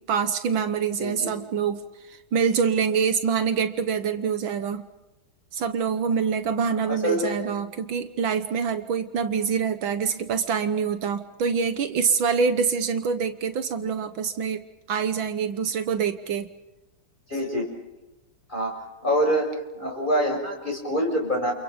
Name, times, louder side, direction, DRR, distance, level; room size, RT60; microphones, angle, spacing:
voice 1, 0.1-1.8 2.1-4.8 5.5-14.6 14.9-16.5, right 6 dB, 70° right, 10 dB, 1.8 m, -25 dB
voice 2, 1.0-1.3 6.9-7.4 17.3-17.7 18.5-18.7 19.0-19.4 19.8-21.5, equal, 20° left, 2 dB, 6.3 m, -25 dB
29.5 x 28.0 x 5.2 m, 1.0 s
omnidirectional pair, 2.3 m